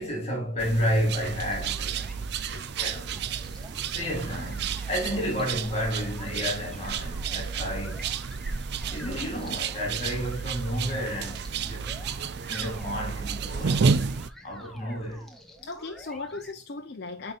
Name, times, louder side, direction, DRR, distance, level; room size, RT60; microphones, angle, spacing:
voice 1, 0.0-8.1 8.9-11.9 12.3-13.9 14.4-15.3, equal, 30° left, 2.3 m, -31 dB
sound 1, 0.6-14.3, right 5 dB, 55° right, 0.4 m, -31 dB
sound 2, 1.5-16.5, equal, ahead, 0.9 m, -48 dB
voice 2, 9.0-9.3 15.6-17.3, left 3 dB, 55° left, 0.7 m, -37 dB
8.9 x 4.2 x 2.5 m
head